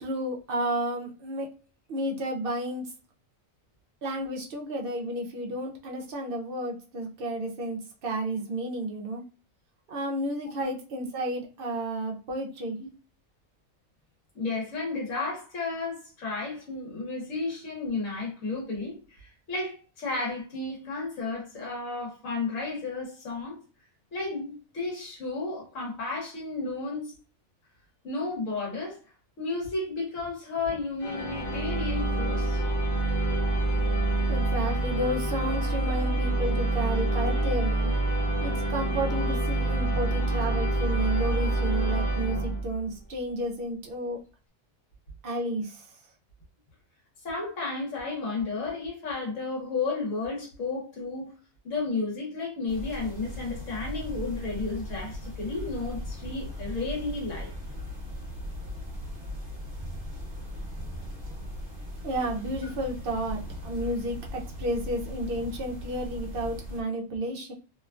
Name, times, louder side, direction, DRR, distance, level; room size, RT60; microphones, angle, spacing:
voice 1, 0.0-1.5 1.9-2.9 4.0-9.2 9.9-12.8 34.3-37.9 38.4-44.2 45.2-45.9 62.0-67.5, right 1 dB, 60° right, 0.6 m, -32 dB
voice 2, 14.3-23.6 24.1-27.1 28.0-29.0 29.4-32.6 47.2-51.3 51.6-57.5, left 3 dB, 75° left, 1.5 m, -33 dB
sound 1, 31.0-42.9, right 2 dB, 40° left, 0.8 m, -27 dB
sound 2, 52.7-66.8, left 1 dB, 40° right, 0.9 m, -38 dB
3.0 x 2.2 x 2.4 m
omnidirectional pair, 1.4 m